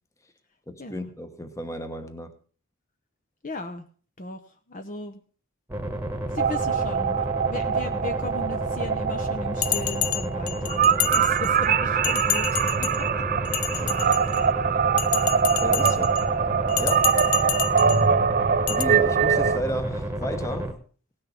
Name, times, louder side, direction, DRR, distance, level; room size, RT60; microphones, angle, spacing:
voice 1, 0.7-2.4 13.8-14.0 15.6-16.2 16.8-17.2 18.7-20.8, equal, 15° left, 1.0 m, -33 dB
voice 2, 3.4-3.9 4.2-4.4 4.7-5.2 6.3-7.2 7.5-12.5 12.8-13.2 13.7-14.3 17.3-17.6, left 2 dB, 35° left, 0.8 m, -37 dB
sound 1, 5.7-20.7, right 1 dB, 10° right, 1.3 m, -31 dB
sound 2, 6.4-19.6, right 7 dB, 40° right, 0.5 m, -23 dB
Bell, 9.6-11.7 12.0-13.0 13.4-14.5 15.0-16.2 16.7-18.0 18.7-18.8, left 13 dB, 75° left, 0.6 m, -29 dB
17.5 x 6.5 x 5.8 m
head